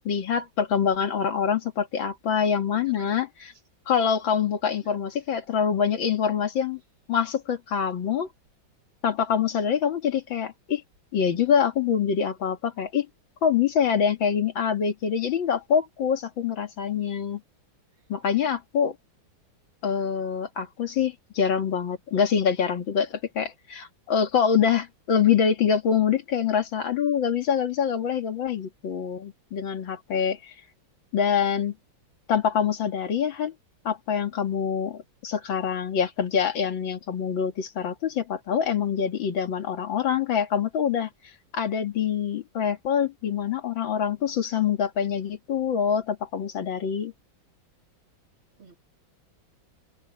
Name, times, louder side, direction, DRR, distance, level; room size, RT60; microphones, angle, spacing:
voice 1, 0.1-3.5 3.9-6.8 7.1-8.3 9.0-10.8 11.1-13.1 13.4-17.4 18.1-19.0 19.8-30.5 31.1-31.7 32.3-33.5 33.8-41.1 41.5-47.1, left 7 dB, 70° left, 2.5 m, -25 dB
voice 2, 2.7-3.2 5.3-5.4 48.6-48.8, right 5 dB, 85° right, 4.1 m, -49 dB
omnidirectional pair, 2.2 m